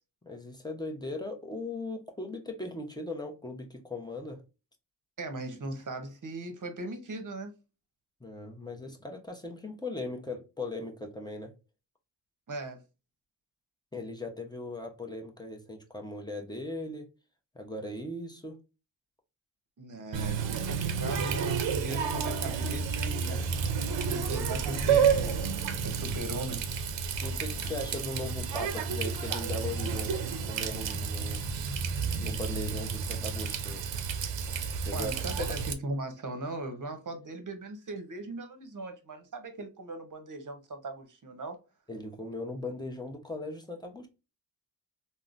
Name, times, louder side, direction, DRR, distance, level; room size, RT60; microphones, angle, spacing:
voice 1, 0.2-4.4 8.2-11.5 13.9-17.1 17.5-18.6 23.9-24.0 27.2-31.4 32.2-33.8 34.9-35.1 35.5-35.6 41.9-44.1, left 2 dB, 10° left, 0.7 m, -38 dB
voice 2, 5.2-7.5 12.5-12.8 19.8-23.4 24.1-25.5 25.8-26.7 34.9-41.6, right 2 dB, 45° right, 0.8 m, -38 dB
Water tap faucet, 20.1-35.7, right 6 dB, 70° right, 0.6 m, -31 dB
3.6 x 2.1 x 2.4 m
cardioid pair, 65°, 45 cm